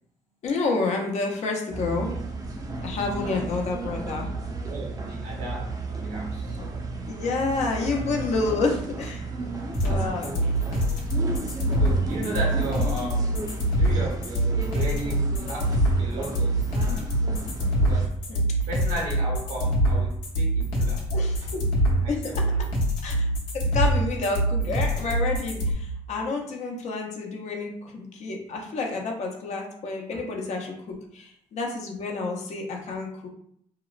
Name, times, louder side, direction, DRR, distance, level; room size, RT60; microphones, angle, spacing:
voice 1, 0.4-2.1 2.8-4.3 6.6-6.7 7.1-9.5 9.8-10.3 18.3-18.4 21.1-21.6 22.1-22.2 23.0-23.3 23.5-33.1, left 3 dB, 60° left, 1 dB, 0.7 m, -29 dB
sound 1, 1.7-18.1, right 2 dB, 30° right, 0.5 m, -34 dB
voice 2, 3.2-3.5 4.7-6.6 7.9-8.0 8.3-8.6 9.8-10.6 11.7-13.5 13.8-17.2 17.7-18.1 18.7-21.0 21.4-22.6 23.0-23.1 30.1-30.2, right 2 dB, 80° right, -2 dB, 1.0 m, -36 dB
sound 2, 9.7-25.7, right 1 dB, 90° left, 0.8 m, -24 dB
2.8 x 2.0 x 2.4 m, 0.69 s
cardioid pair, 85°, 13 cm